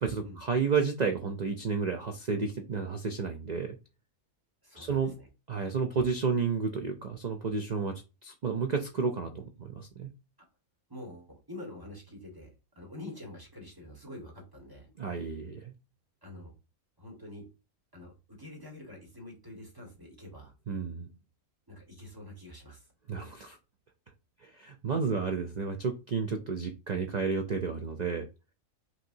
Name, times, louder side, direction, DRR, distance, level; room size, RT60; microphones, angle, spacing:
voice 1, 0.0-3.8 4.8-5.2 5.5-7.9 8.2-10.1 15.0-15.7 20.7-21.1 23.1-23.6 24.4-28.3, right 5 dB, 70° right, 5 dB, 0.4 m, -31 dB
voice 2, 4.6-5.3 10.9-12.5 12.7-14.9 16.2-16.5 17.0-17.5 17.9-20.5 21.7-22.9, left 1 dB, 15° right, 0 dB, 1.5 m, -46 dB
6.1 x 2.9 x 2.7 m, 0.29 s
omnidirectional pair, 1.5 m